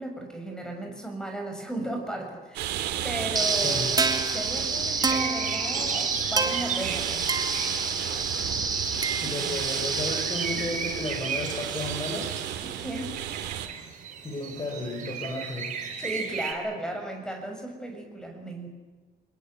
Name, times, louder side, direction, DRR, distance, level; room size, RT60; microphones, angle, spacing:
voice 1, 0.0-3.8 4.3-7.3 8.9-9.6 12.8-13.1 16.0-18.7, right 1 dB, 5° left, 3 dB, 7.1 m, -35 dB
sound 1, 2.5-13.7, right 10 dB, 80° right, 3.0 m, -34 dB
sound 2, 3.4-12.4, right 4 dB, 25° right, 2.9 m, -29 dB
voice 2, 3.5-3.9 9.2-12.3 14.2-15.7, left 2 dB, 30° left, 2 dB, 6.2 m, -33 dB
sound 3, 5.0-16.5, right 6 dB, 50° right, 4.5 m, -36 dB
26.5 x 21.0 x 8.2 m, 1.4 s
cardioid pair, 110°, 17 cm